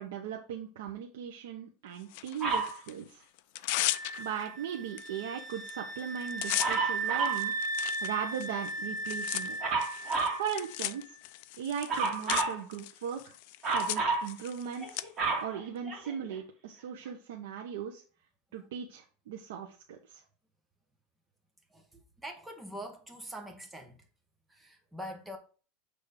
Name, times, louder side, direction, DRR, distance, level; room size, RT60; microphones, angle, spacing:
voice 1, 0.0-3.2 4.2-9.6 10.4-11.2 11.6-13.4 13.7-15.0 15.4-18.0 18.5-20.2, right 8 dB, 85° right, 0.9 m, -38 dB
Tearing, 2.1-2.9 3.4-4.5 5.0-5.1 5.4-5.7 6.0-15.0, left 16 dB, 55° left, 0.4 m, -37 dB
Dog, 2.4-2.8 6.6-7.5 9.6-10.4 11.9-12.6 13.6-14.3 14.8-16.3 17.1-17.2, right 4 dB, 25° right, 2.1 m, -30 dB
sound 1, 3.8-10.6, right 3 dB, 30° left, 1.7 m, -36 dB
voice 2, 22.2-24.0 24.5-25.4, equal, 5° right, 1.0 m, -43 dB
6.4 x 3.5 x 5.2 m
supercardioid pair, 165°, 0 cm